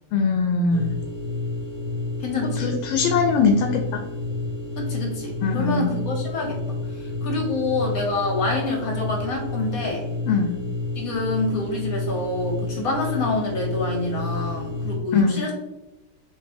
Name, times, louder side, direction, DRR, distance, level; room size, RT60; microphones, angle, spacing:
voice 1, 0.1-0.9 2.6-4.0 5.4-5.9 10.3-10.5 15.1-15.4, left 4 dB, 80° left, 3 dB, 1.4 m, -21 dB
sound 1, 0.7-15.0, left 2 dB, 15° right, 0.8 m, -30 dB
voice 2, 2.2-2.7 4.8-10.1 10.9-15.5, left 2 dB, 60° left, 0 dB, 1.0 m, -27 dB
6.0 x 2.6 x 2.6 m, 1.0 s
omnidirectional pair, 2.2 m